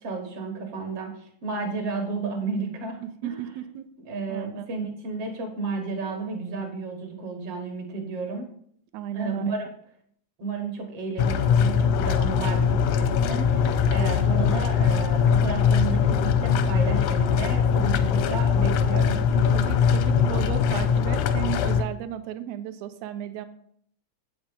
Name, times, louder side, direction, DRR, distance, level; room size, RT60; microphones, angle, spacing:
voice 1, 0.0-3.5 4.0-8.5 9.1-9.7 10.4-19.2, right 4 dB, 60° right, 4 dB, 2.1 m, -32 dB
voice 2, 3.0-3.9 4.3-4.7 8.9-9.4 19.3-23.5, right 11 dB, 75° right, 9 dB, 1.8 m, -34 dB
sound 1, 11.2-21.8, left 7 dB, 85° left, 2.1 m, -22 dB
7.8 x 6.0 x 5.2 m, 0.65 s
omnidirectional pair, 3.4 m